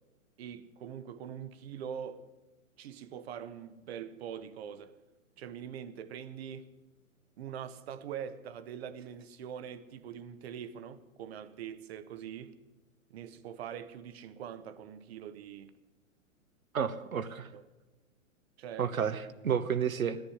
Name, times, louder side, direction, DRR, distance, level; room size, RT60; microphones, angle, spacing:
voice 1, 0.4-2.3 2.8-5.0 5.4-6.7 7.4-12.6 13.1-15.7 17.1-17.6 18.6-18.9, right 8 dB, 50° right, 1.1 m, -43 dB
voice 2, 16.7-17.4 18.8-20.2, right 7 dB, 75° right, 1.1 m, -31 dB
14.0 x 10.5 x 9.8 m
figure-of-eight pair, 120°, 41 cm